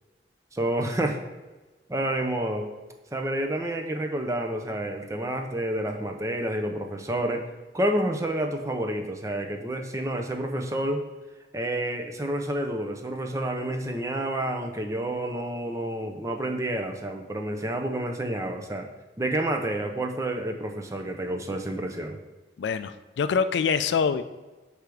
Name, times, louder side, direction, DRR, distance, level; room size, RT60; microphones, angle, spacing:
voice 1, 0.5-1.2 1.9-2.7 3.1-7.5 7.7-11.1 11.5-18.9 19.2-22.2, right 1 dB, 20° right, 3 dB, 0.5 m, -29 dB
voice 2, 22.6-22.9 23.2-24.2, left 6 dB, 80° left, 11 dB, 0.3 m, -24 dB
6.5 x 3.4 x 4.7 m, 1.2 s
head